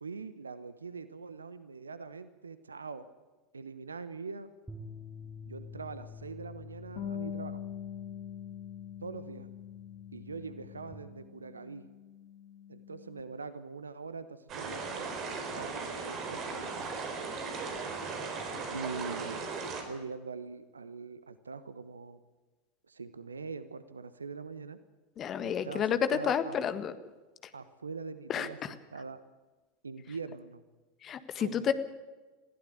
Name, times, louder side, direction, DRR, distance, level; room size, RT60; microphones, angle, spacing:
voice 1, 0.0-3.1 3.5-4.5 5.5-7.6 9.0-9.5 10.1-11.9 12.7-17.1 18.7-19.4 19.9-22.2 22.9-24.8 25.4-26.6 27.5-29.2 29.8-30.6 31.4-31.6, right 4 dB, 80° right, 13 dB, 1.0 m, -43 dB
sound 1, 4.7-10.9, left 5 dB, 5° right, 2.5 m, -49 dB
Bass guitar, 7.0-13.2, left 8 dB, 50° left, 2.6 m, -44 dB
sound 2, 14.5-19.8, right 4 dB, 40° right, 4.5 m, -37 dB
voice 2, 25.2-26.9 28.3-28.5 31.0-31.7, left 8 dB, 35° left, 12 dB, 1.6 m, -30 dB
21.0 x 15.5 x 8.5 m, 1.2 s
figure-of-eight pair, 80°, 0 cm